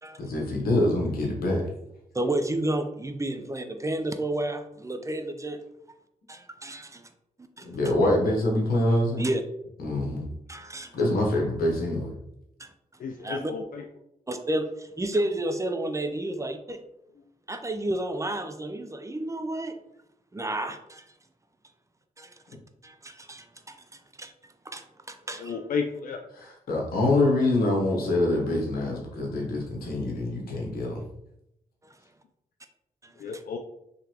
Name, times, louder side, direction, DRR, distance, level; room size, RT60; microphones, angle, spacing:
voice 1, 0.2-1.6 7.6-9.2 9.8-10.3 10.9-12.1 26.3-31.0, left 1 dB, 90° left, -1 dB, 1.0 m, -25 dB
voice 2, 2.1-5.6 6.3-7.1 7.6-7.7 9.2-9.4 10.5-11.0 12.6-12.7 13.2-13.5 14.3-16.8 17.5-19.8 20.3-21.1 22.2-22.3 22.8-23.8 24.2-24.3 24.7-25.6 33.0-33.4, right 1 dB, 20° right, 7 dB, 0.5 m, -31 dB
voice 3, 13.0-13.8 25.4-26.2 33.2-33.6, left 5 dB, 70° left, 3 dB, 0.4 m, -32 dB
3.9 x 3.2 x 2.9 m, 0.81 s
cardioid pair, 60°, 15 cm